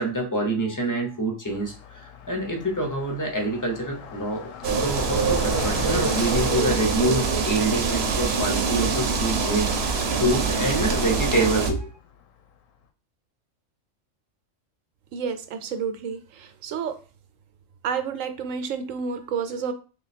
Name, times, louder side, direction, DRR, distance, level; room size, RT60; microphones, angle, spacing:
voice 1, 0.0-11.9, right 1 dB, 20° left, 2 dB, 0.5 m, -26 dB
Car passing by, 1.5-12.6, left 7 dB, 90° left, 1.0 m, -41 dB
sound 1, 4.6-11.7, right 5 dB, 60° right, 0.8 m, -24 dB
voice 2, 15.1-17.0 17.8-19.7, right 6 dB, 85° right, 8 dB, 1.0 m, -30 dB
3.2 x 2.3 x 4.0 m, 0.35 s
omnidirectional pair, 1.3 m